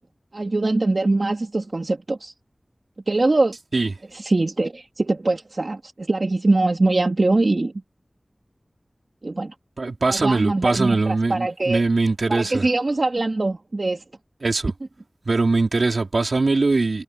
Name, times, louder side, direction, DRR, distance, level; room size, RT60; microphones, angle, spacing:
voice 1, 0.3-2.3 3.1-3.5 4.1-7.7 9.2-9.5 10.0-11.8 12.3-14.0, right 2 dB, 60° right, 3.2 m, -22 dB
voice 2, 9.8-12.7 14.4-14.7 15.2-17.0, right 3 dB, 80° right, 4.9 m, -21 dB
wide cardioid pair, 55°, 0 cm